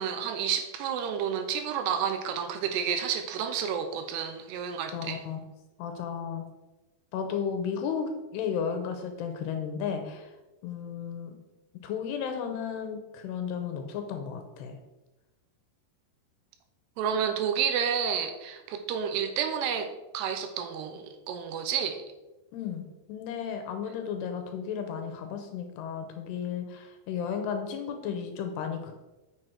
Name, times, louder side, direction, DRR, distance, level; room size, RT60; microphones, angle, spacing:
voice 1, 0.0-5.2 17.0-22.0, right 7 dB, 85° right, 7 dB, 2.7 m, -30 dB
voice 2, 4.9-5.4 5.8-6.4 7.1-10.3 10.6-11.3 11.8-14.8 22.5-29.0, left 7 dB, 80° left, 6 dB, 2.8 m, -34 dB
7.6 x 6.8 x 4.6 m, 1.0 s
omnidirectional pair, 5.0 m